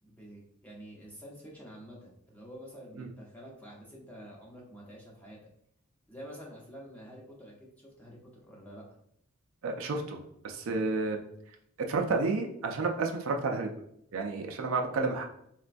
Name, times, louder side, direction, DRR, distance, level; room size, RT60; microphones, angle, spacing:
voice 1, 0.0-5.4 6.1-8.8, equal, 5° left, -4 dB, 0.8 m, -48 dB
voice 2, 9.6-11.2 11.9-13.7 14.1-15.2, right 3 dB, 70° right, 3 dB, 0.4 m, -31 dB
4.2 x 2.2 x 2.5 m, 0.73 s
head